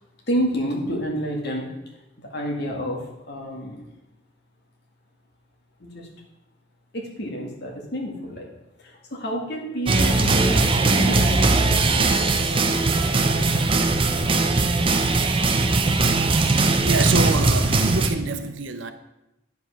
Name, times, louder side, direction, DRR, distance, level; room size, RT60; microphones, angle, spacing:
voice 1, 0.3-3.8 5.8-6.1 6.9-8.5 8.8-13.3, equal, 55° left, 1.9 m, -30 dB
sound 1, 9.9-18.1, right 3 dB, 30° right, 0.6 m, -20 dB
voice 2, 16.0-16.5 16.8-18.9, right 3 dB, 80° right, 0.8 m, -26 dB
9.4 x 5.2 x 5.8 m
head